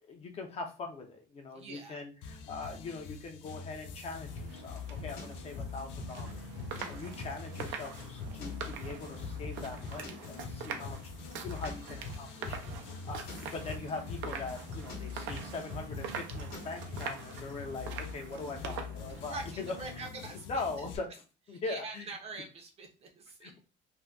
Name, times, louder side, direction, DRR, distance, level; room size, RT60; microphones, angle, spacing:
voice 1, 0.1-6.4 6.9-11.0 11.4-12.7 13.0-19.7 20.5-21.1 21.5-22.1 23.4-23.6, left 3 dB, 35° left, 4 dB, 0.5 m, -41 dB
voice 2, 1.5-2.0 6.8-7.2 19.2-20.9 21.5-23.6, right 3 dB, 35° right, 2 dB, 0.6 m, -45 dB
sound 1, 2.2-21.0, left 6 dB, 90° left, 0.5 m, -45 dB
sound 2, 4.1-20.1, right 6 dB, 90° right, 0.6 m, -45 dB
sound 3, 4.4-17.1, left 2 dB, 50° left, 1.0 m, -42 dB
2.5 x 2.2 x 3.3 m, 0.34 s
cardioid pair, 180°, 19 cm